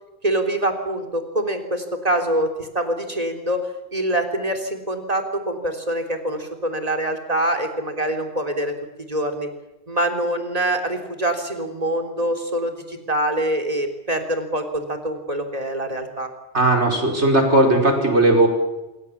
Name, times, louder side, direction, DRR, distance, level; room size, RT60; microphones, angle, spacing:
voice 1, 0.2-3.6 3.9-8.7 9.1-9.5 9.9-16.3, right 1 dB, 35° right, 4 dB, 3.4 m, -25 dB
voice 2, 16.5-18.5, right 2 dB, 80° right, 2 dB, 5.3 m, -17 dB
26.0 x 23.5 x 7.3 m, 1.0 s
omnidirectional pair, 1.2 m